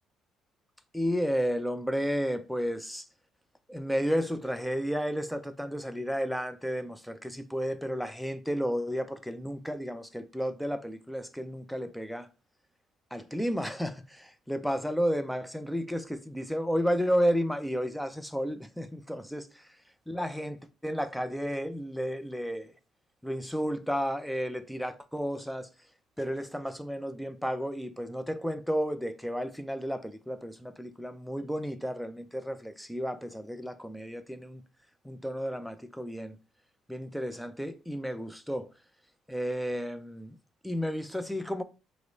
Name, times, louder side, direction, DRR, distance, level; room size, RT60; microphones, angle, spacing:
voice 1, 0.9-3.1 3.7-12.3 13.1-19.7 20.1-22.7 23.2-25.7 26.2-34.6 35.0-36.4 36.9-38.7 39.3-40.3 40.6-41.6, equal, ahead, 0.4 m, -32 dB
4.7 x 2.0 x 3.9 m
cardioid pair, 100°, 0 cm